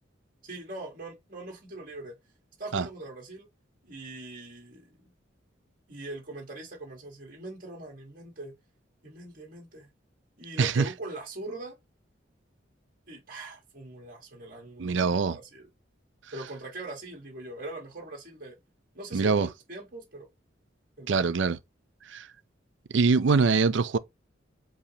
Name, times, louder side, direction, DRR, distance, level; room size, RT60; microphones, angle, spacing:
voice 1, 0.4-2.2 2.6-3.5 3.8-5.1 5.9-8.5 9.0-9.9 10.4-11.8 13.1-15.6 16.3-18.6 18.9-20.3 21.0-21.1, right 2 dB, 45° right, 1.5 m, -41 dB
voice 2, 10.6-10.9 14.8-15.4 19.1-19.5 21.1-21.6 22.1-22.3 22.9-24.0, right 4 dB, 75° right, 0.5 m, -23 dB
4.9 x 3.3 x 2.9 m
head